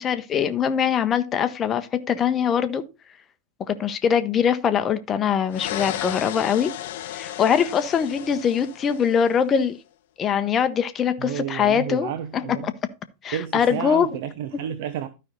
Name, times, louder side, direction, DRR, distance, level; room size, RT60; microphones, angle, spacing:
voice 1, 0.0-2.8 3.6-6.7 7.1-9.8 10.2-12.7 13.2-14.1, left 7 dB, 25° left, 0.8 m, -22 dB
sound 1, 5.5-9.4, left 13 dB, 55° left, 0.5 m, -34 dB
voice 2, 11.2-12.7 13.3-15.1, right 10 dB, 50° right, 0.7 m, -31 dB
12.5 x 5.4 x 3.8 m
figure-of-eight pair, 90°, 0 cm